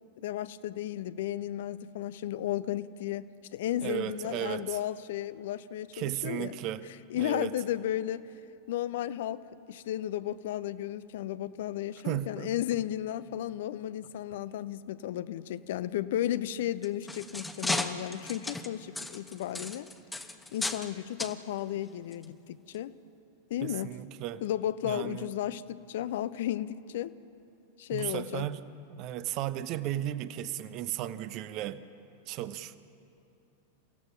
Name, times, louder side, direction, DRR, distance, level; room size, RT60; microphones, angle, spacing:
voice 1, 0.2-6.5 7.1-8.3 8.7-19.9 20.5-22.9 23.5-24.0 24.4-27.1 27.8-28.5, left 12 dB, 55° left, 16 dB, 0.6 m, -34 dB
voice 2, 3.8-4.8 5.9-6.9 7.1-7.5 12.0-12.8 23.6-24.4 24.8-25.3 27.9-28.6 28.9-31.8 32.3-32.8, right 13 dB, 40° right, 14 dB, 0.8 m, -35 dB
sound 1, 16.7-20.9 21.2-21.4 22.1-22.2 22.7-22.8, left 2 dB, 5° left, 1.0 m, -35 dB
29.0 x 16.5 x 5.9 m, 2.9 s
figure-of-eight pair, 90°, 0 cm